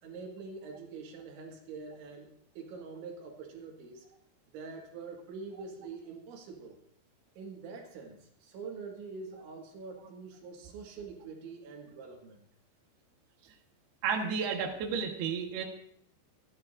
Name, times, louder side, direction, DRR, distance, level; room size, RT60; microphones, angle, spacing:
voice 1, 0.0-4.1 4.5-6.8 7.4-12.5, right 4 dB, 85° right, 1 dB, 4.2 m, -45 dB
voice 2, 14.0-15.6, right 6 dB, 65° right, 2 dB, 3.2 m, -32 dB
28.0 x 9.8 x 2.7 m, 0.67 s
omnidirectional pair, 5.2 m